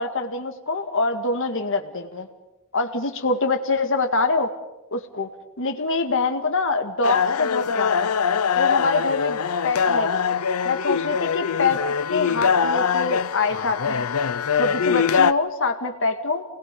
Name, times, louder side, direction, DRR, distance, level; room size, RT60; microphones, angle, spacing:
voice 1, 0.0-2.3 2.7-4.5 4.9-5.3 5.6-8.1 8.6-10.3 10.6-11.8 12.1-14.1 14.6-16.4, left 3 dB, 60° left, 6 dB, 2.0 m, -25 dB
sound 1, 7.0-15.3, left 6 dB, 80° left, 0.7 m, -22 dB
29.0 x 21.0 x 5.4 m, 1.0 s
head